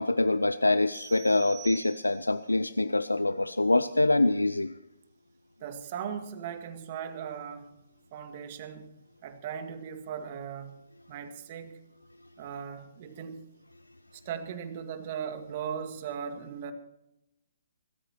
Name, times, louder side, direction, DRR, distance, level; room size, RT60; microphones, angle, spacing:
voice 1, 0.0-4.7, left 2 dB, 90° left, 14 dB, 0.6 m, -25 dB
sound 1, 0.9-2.5, right 10 dB, 20° right, 2.4 m, -47 dB
voice 2, 5.6-7.7 8.1-8.9 9.2-10.7 11.1-11.8 12.4-13.4 14.1-16.7, right 7 dB, 40° right, 7 dB, 2.0 m, -38 dB
27.5 x 14.0 x 3.0 m, 0.92 s
figure-of-eight pair, 130°, 0 cm